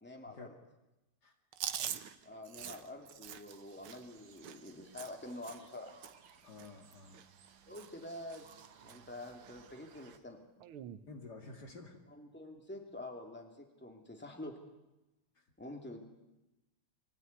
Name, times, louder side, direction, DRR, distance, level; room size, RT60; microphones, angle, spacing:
voice 1, 0.0-0.5 2.2-5.9 7.7-8.5 8.8-10.4 12.1-14.5 15.6-16.0, left 1 dB, 5° left, 3 dB, 2.7 m, -47 dB
Chewing mastication, 1.5-5.8 6.0-6.3 6.6-7.5 7.7-8.1 8.3-9.0 9.4-9.6 10.6-11.0, right 10 dB, 85° right, 1.9 m, -44 dB
sound 1, 3.5-10.2, right 7 dB, 65° right, 1.9 m, -61 dB
voice 2, 6.4-7.2 11.1-12.0 15.4-15.5, left 3 dB, 50° left, 4 dB, 2.5 m, -51 dB
23.5 x 16.5 x 9.7 m, 0.99 s
omnidirectional pair, 2.3 m